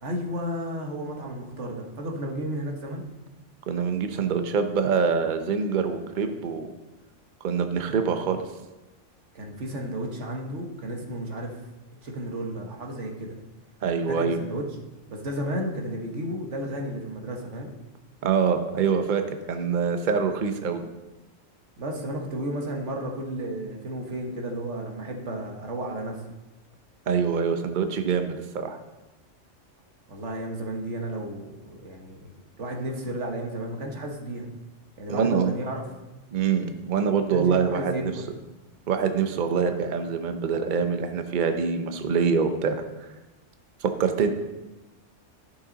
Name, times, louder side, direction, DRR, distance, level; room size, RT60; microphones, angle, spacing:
voice 1, 0.0-3.0 9.3-11.6 12.0-13.3 14.0-14.6 15.1-17.7 21.8-26.2 30.1-32.3 32.6-34.5 35.0-35.8 37.3-38.2, right 1 dB, 70° right, 1 dB, 1.7 m, -33 dB
voice 2, 3.7-6.7 7.4-8.4 13.8-14.4 18.2-20.8 27.1-28.8 35.1-35.5 36.3-38.1 38.9-42.8 43.8-44.3, right 6 dB, 45° right, 7 dB, 0.8 m, -25 dB
11.5 x 6.8 x 3.9 m, 1.1 s
omnidirectional pair, 1.3 m